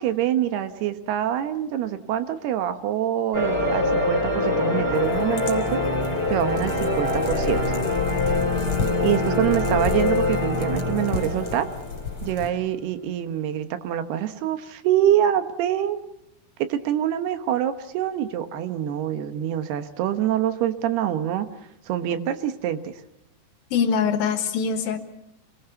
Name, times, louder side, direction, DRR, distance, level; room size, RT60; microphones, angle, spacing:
voice 1, 0.0-5.8 6.3-7.8 9.0-11.7 12.2-16.0 16.7-21.5 21.9-22.9, right 11 dB, 80° right, 10 dB, 3.1 m, -25 dB
sound 1, 3.3-12.5, left 2 dB, 15° left, 5.2 m, -24 dB
sound 2, 4.9-12.5, left 4 dB, 35° left, 3.5 m, -33 dB
voice 2, 23.7-25.0, left 6 dB, 70° left, 8 dB, 3.2 m, -23 dB
27.0 x 21.0 x 7.0 m, 0.81 s
omnidirectional pair, 4.7 m